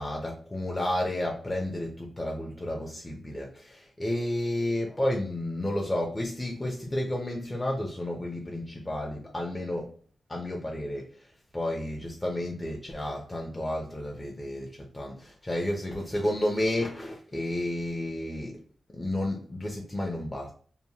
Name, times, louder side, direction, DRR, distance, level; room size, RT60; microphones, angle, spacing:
voice 1, 0.0-10.0 10.3-18.6 18.9-20.5, left 1 dB, 15° left, 0.4 m, -31 dB
2.8 x 2.0 x 2.7 m
wide cardioid pair, 125°, 0 cm